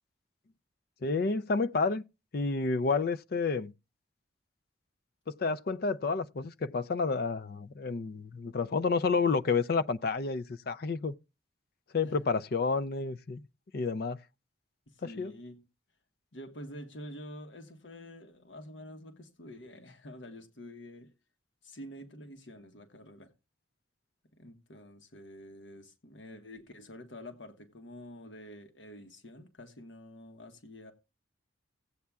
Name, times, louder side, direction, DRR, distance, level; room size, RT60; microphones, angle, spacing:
voice 1, 1.0-2.0 2.3-3.7 5.4-11.1 11.9-13.4 13.7-14.2 15.2-15.3, left 4 dB, 50° left, 0.4 m, -30 dB
voice 2, 14.9-15.6 16.3-21.1 21.6-23.3 24.4-30.9, left 1 dB, 65° left, 1.3 m, -48 dB
16.5 x 8.4 x 2.3 m
head